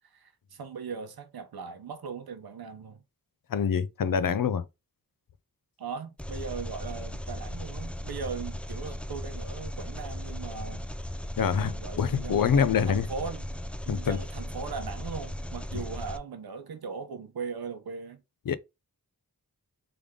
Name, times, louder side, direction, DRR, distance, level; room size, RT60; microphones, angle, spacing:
voice 1, 0.1-3.0 5.8-10.9 11.5-13.5 13.8-18.2, right 5 dB, 85° right, 0.8 m, -39 dB
voice 2, 3.5-4.7 11.4-13.1 13.9-14.2 18.5-18.6, left 7 dB, 65° left, 0.5 m, -25 dB
Engine, 6.2-16.2, left 1 dB, 5° left, 0.3 m, -37 dB
3.4 x 3.4 x 3.6 m
wide cardioid pair, 85°, 36 cm